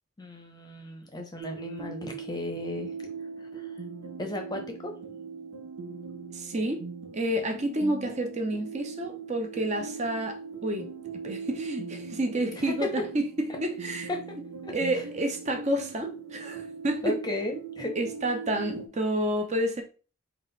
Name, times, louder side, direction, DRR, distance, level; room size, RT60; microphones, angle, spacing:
voice 1, 0.2-2.9 3.4-3.7 4.2-4.9 12.5-12.9 14.1-14.4 14.6-14.7 17.0-17.9, left 1 dB, 20° left, 0.7 m, -35 dB
sound 1, 1.4-18.9, right 5 dB, 90° right, 0.7 m, -40 dB
voice 2, 6.3-6.8 7.1-10.9 11.1-14.1 14.7-17.1 18.0-19.8, right 1 dB, 35° right, 0.7 m, -29 dB
3.8 x 2.4 x 3.9 m
head